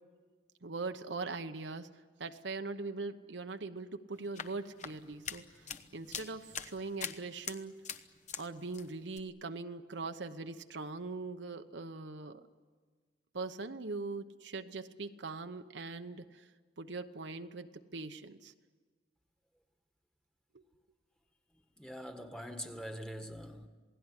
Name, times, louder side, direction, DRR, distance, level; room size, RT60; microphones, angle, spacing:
voice 1, 0.6-5.7 5.9-7.7 8.4-12.5 13.3-16.5 16.8-18.5, right 3 dB, 75° right, 1.0 m, -41 dB
sound 1, 4.1-8.5 8.7-9.2, left 7 dB, 40° left, 1.0 m, -44 dB
voice 2, 21.8-23.7, equal, 5° left, 1.5 m, -43 dB
28.0 x 18.0 x 9.9 m
head